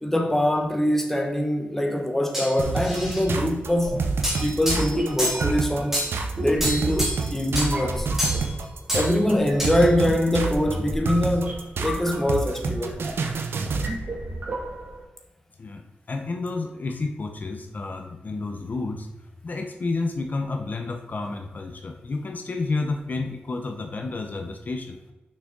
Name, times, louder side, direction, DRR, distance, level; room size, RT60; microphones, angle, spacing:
voice 1, 0.0-4.1 4.4-6.0 6.4-8.1 8.9-13.0, left 1 dB, 10° left, 0.9 m, -23 dB
sound 1, 2.3-3.2 4.2-5.5 5.9-6.2 6.6-7.3 7.5-7.7 8.2-8.5 8.9-9.1 9.6-9.8, equal, 10° right, 2.3 m, -28 dB
sound 2, 2.6-14.0, right 4 dB, 85° right, 0.7 m, -28 dB
sound 3, 3.0-15.0, right 1 dB, 45° right, 2.3 m, -34 dB
voice 2, 16.1-19.1 19.4-25.0, left 3 dB, 45° left, 0.8 m, -30 dB
6.5 x 6.0 x 3.8 m
wide cardioid pair, 125°, 4 cm